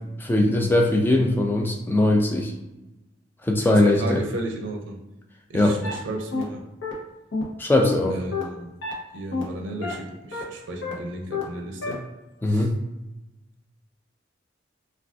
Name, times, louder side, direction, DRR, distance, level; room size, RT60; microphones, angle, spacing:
voice 1, 0.2-2.5 3.4-4.2 5.5-5.8 7.6-8.2 12.4-12.8, left 1 dB, 10° left, 2 dB, 0.3 m, -20 dB
voice 2, 3.6-5.0 5.5-6.6 8.1-8.7 9.1-12.1 12.5-12.7, right 2 dB, 80° right, 1 dB, 0.5 m, -34 dB
sound 1, 5.8-5.9 6.3-6.4 6.8-6.9 7.3-7.4 7.8-7.9 8.3-8.4 8.8-8.9 9.3-9.4 9.8-9.9 10.3-10.4 10.8-10.9 11.3-11.4 11.8-11.9, left 4 dB, 85° left, 0.7 m, -28 dB
2.4 x 2.3 x 3.4 m, 1.0 s
head